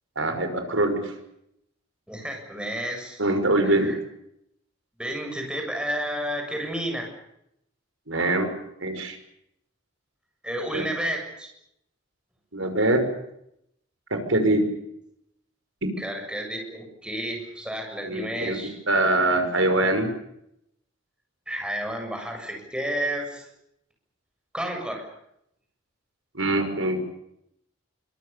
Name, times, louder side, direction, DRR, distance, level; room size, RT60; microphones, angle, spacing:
voice 1, 0.2-1.1 3.2-3.9 8.1-8.5 8.8-9.2 10.7-10.9 12.5-13.1 14.1-14.7 18.0-18.6 18.9-20.1 26.3-27.2, right 2 dB, 70° right, 7 dB, 5.8 m, -23 dB
voice 2, 2.1-3.2 3.6-3.9 5.0-7.1 10.4-11.5 16.0-18.8 21.5-23.5 24.5-25.1, right 1 dB, 5° right, 2 dB, 7.4 m, -31 dB
27.0 x 25.0 x 7.0 m, 0.78 s
head